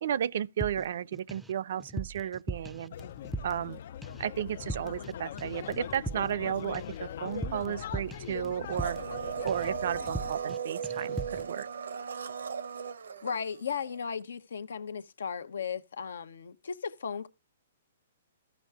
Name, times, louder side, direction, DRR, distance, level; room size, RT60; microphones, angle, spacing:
voice 1, 0.0-2.9 3.4-3.8 4.2-9.0 9.4-11.7, right 9 dB, 65° right, 0.5 m, -33 dB
sound 1, 0.6-1.5 1.8-3.7 4.0-4.3 4.6-5.1 5.4-9.2 9.5-9.8 10.1-10.6 10.8-11.5, right 2 dB, 5° right, 0.5 m, -40 dB
sound 2, 2.9-10.3, left 9 dB, 60° left, 0.4 m, -41 dB
Domestic sounds home sounds, 8.7-14.0 14.2-14.3, right 6 dB, 85° right, 1.0 m, -37 dB
voice 2, 13.2-17.3, left 6 dB, 80° left, 0.9 m, -36 dB
14.0 x 5.7 x 3.5 m
hypercardioid pair, 140°, 0 cm